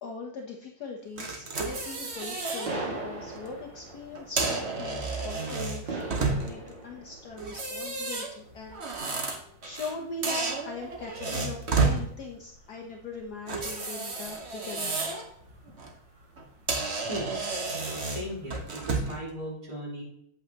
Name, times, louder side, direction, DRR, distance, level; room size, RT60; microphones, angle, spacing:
voice 1, 0.0-8.8 9.1-15.0, left 3 dB, 60° left, 1 dB, 1.4 m, -40 dB
sound 1, 1.2-2.7 3.1-3.4 4.1-6.7 7.4-9.9 10.2-12.0 13.5-15.3 15.7-15.9 16.4-16.5 16.7-19.2, right 3 dB, 40° right, 1.4 m, -31 dB
sound 2, 1.2-19.1, right 2 dB, 65° right, 2.7 m, -44 dB
voice 2, 18.0-20.0, equal, 20° right, -7 dB, 3.9 m, -37 dB
8.5 x 8.5 x 2.9 m, 0.71 s
omnidirectional pair, 2.1 m